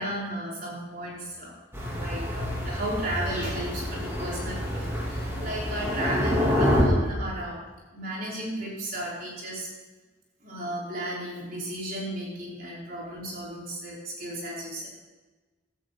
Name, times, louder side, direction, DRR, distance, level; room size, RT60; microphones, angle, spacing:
voice 1, 0.0-7.6 7.9-9.7 10.4-14.9, right 1 dB, 45° right, -5 dB, 5.2 m, -34 dB
Thunder, 1.7-6.8, equal, 15° right, 3.6 m, -28 dB
15.5 x 13.5 x 4.4 m, 1.2 s
head